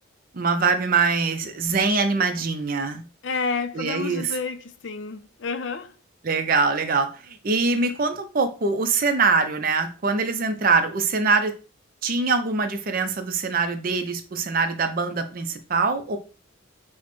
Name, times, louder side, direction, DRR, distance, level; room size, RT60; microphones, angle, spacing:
voice 1, 0.3-3.0 3.7-4.4 6.2-11.5 12.0-16.2, right 4 dB, 40° right, 0.5 m, -23 dB
voice 2, 3.2-5.9, left 4 dB, 60° left, 0.4 m, -30 dB
6.2 x 2.1 x 3.0 m
head